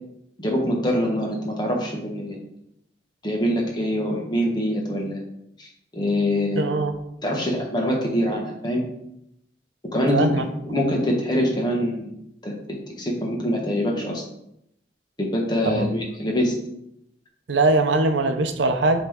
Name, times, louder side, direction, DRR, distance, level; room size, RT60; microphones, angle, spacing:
voice 1, 0.4-2.4 3.2-5.2 5.6-5.7 5.9-6.8 7.2-8.8 9.9-12.2 12.4-14.2 15.2-16.6, equal, 25° left, -1 dB, 1.2 m, -24 dB
voice 2, 6.6-7.0 10.1-10.5 15.8-15.9 17.5-19.0, right 2 dB, 80° right, 7 dB, 0.6 m, -21 dB
8.3 x 3.2 x 3.6 m, 0.78 s
head